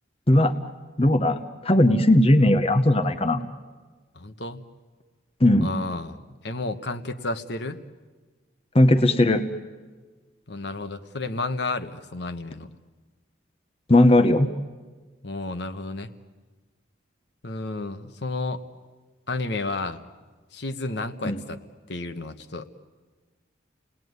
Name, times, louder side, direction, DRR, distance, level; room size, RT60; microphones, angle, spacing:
voice 1, 1.0-3.4 5.4-5.7 8.7-9.4 13.9-14.5 21.2-21.4, left 1 dB, 30° left, 8 dB, 1.0 m, -18 dB
voice 2, 4.1-4.6 5.6-7.8 10.5-12.7 15.2-16.1 17.4-18.6 19.3-20.0 20.5-21.6 21.9-22.7, left 2 dB, 60° left, 9 dB, 1.2 m, -31 dB
29.5 x 20.0 x 9.5 m, 1.3 s
head